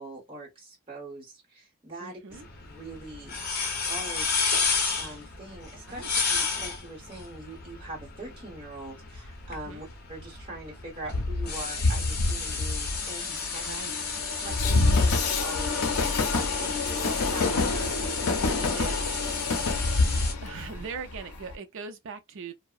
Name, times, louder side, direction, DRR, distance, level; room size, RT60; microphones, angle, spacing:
voice 1, 0.0-3.4 3.6-4.3 5.0-6.0 6.3-13.8 14.4-18.0, right 1 dB, 25° right, 1.1 m, -42 dB
voice 2, 2.0-2.5 5.9-6.1 9.7-9.9 13.6-13.9 18.8-19.2 20.4-22.5, right 5 dB, 60° right, 0.5 m, -40 dB
sound 1, 2.3-20.3, left 4 dB, 45° left, 0.7 m, -33 dB
Train, 11.1-21.5, left 3 dB, 80° left, 0.5 m, -27 dB
2.7 x 2.1 x 2.4 m
head